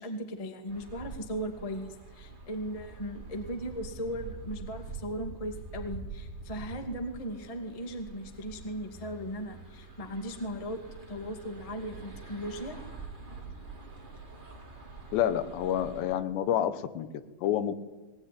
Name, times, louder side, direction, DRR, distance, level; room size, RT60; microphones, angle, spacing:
voice 1, 0.0-10.8 11.1-12.8, equal, 20° left, 5 dB, 0.9 m, -37 dB
sound 1, 0.7-16.1, right 3 dB, 15° right, 2.3 m, -45 dB
voice 2, 15.1-17.1 17.4-17.7, left 10 dB, 85° left, 12 dB, 3.4 m, -28 dB
21.0 x 18.5 x 10.0 m, 1.2 s
omnidirectional pair, 4.9 m